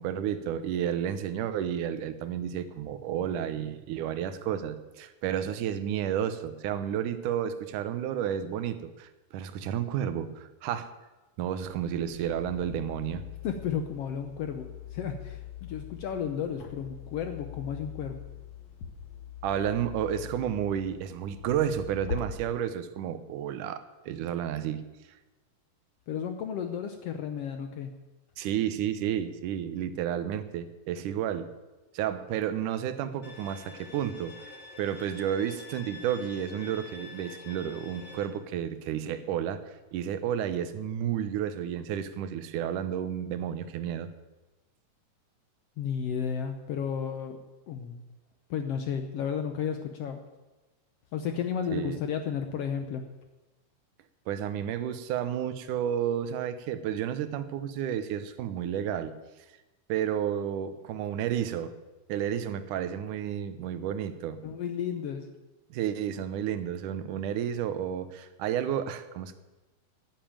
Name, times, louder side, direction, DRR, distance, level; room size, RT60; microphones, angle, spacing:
voice 1, 0.0-10.9 11.4-13.3 19.4-24.8 28.4-31.5 31.9-44.1 51.7-52.0 54.3-59.1 59.9-61.7 62.1-64.4 65.7-69.3, right 9 dB, 75° right, 11 dB, 2.3 m, -31 dB
sound 1, 11.6-22.2, left 10 dB, 55° left, 2.5 m, -43 dB
voice 2, 13.4-18.2 26.1-27.9 45.8-47.4 47.7-48.0 48.5-50.2 51.1-53.0 64.4-65.3, left 7 dB, 75° left, 7 dB, 1.4 m, -33 dB
Bowed string instrument, 33.2-38.3, left 3 dB, 30° left, 1.3 m, -46 dB
12.0 x 9.2 x 8.9 m, 1.1 s
omnidirectional pair, 3.9 m